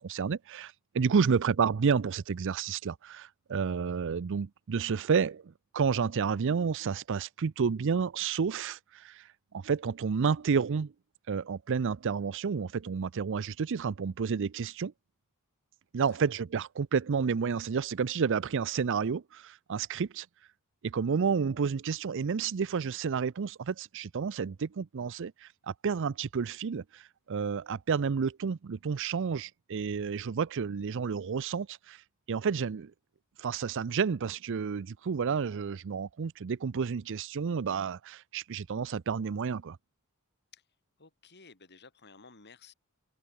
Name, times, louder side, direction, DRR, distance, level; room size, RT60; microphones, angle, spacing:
voice 1, 0.0-9.3 9.5-10.9 11.3-14.9 15.9-20.3 20.8-32.0 32.3-32.9 33.4-39.8, right 6 dB, 60° right, 0.5 m, -30 dB
voice 2, 41.0-42.7, left 4 dB, 50° left, 3.6 m, -55 dB
head